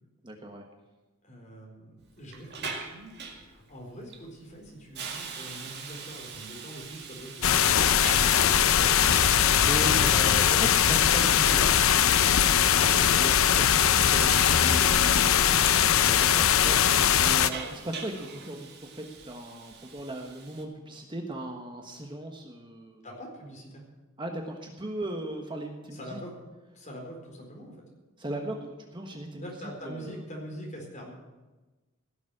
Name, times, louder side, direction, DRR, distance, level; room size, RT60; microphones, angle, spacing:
voice 1, 0.2-0.6 8.8-9.2 9.6-11.2 12.7-23.0 24.2-26.2 28.2-30.2, right 1 dB, 20° right, 3 dB, 1.2 m, -38 dB
voice 2, 1.2-3.1 3.5-7.7 11.2-11.7 23.0-23.9 25.9-26.4 26.7-27.8 29.4-31.1, equal, 35° left, -1 dB, 4.4 m, -43 dB
Hiss, 2.0-20.6, right 5 dB, 50° right, 2.1 m, -44 dB
sound 1, 7.4-17.5, left 9 dB, 65° left, 0.6 m, -21 dB
16.5 x 7.2 x 10.0 m, 1.2 s
head